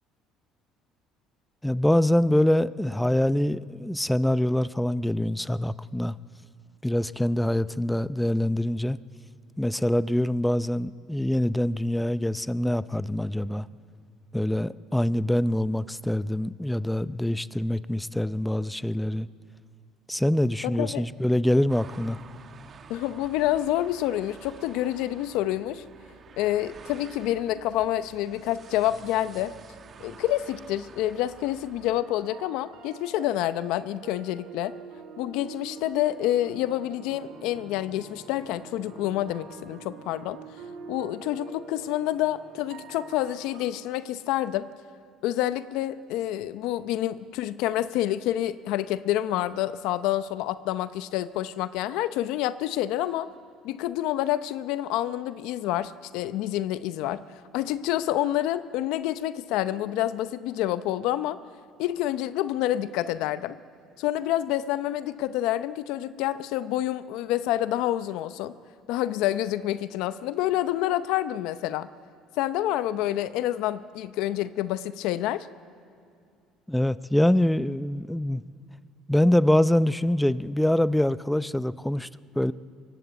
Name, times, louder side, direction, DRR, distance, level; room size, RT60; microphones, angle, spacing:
voice 1, 1.6-6.2 6.8-9.0 9.6-13.7 14.3-19.3 20.1-22.2 76.7-78.4 79.1-82.1 82.3-82.5, left 1 dB, 5° left, 16 dB, 0.6 m, -24 dB
sound 1, 21.7-32.0, right 6 dB, 40° right, 1.2 m, -49 dB
voice 2, 22.9-25.8 26.4-29.5 30.0-34.7 35.2-40.4 40.9-44.7 45.2-53.3 53.6-57.2 57.5-61.4 61.8-63.6 64.0-68.6 68.9-71.9 72.4-75.5, left 13 dB, 75° left, 13 dB, 0.7 m, -28 dB
sound 2, 31.8-43.7, right 5 dB, 70° right, 3.7 m, -45 dB
23.0 x 20.0 x 8.2 m, 2.4 s
supercardioid pair, 95°, 0 cm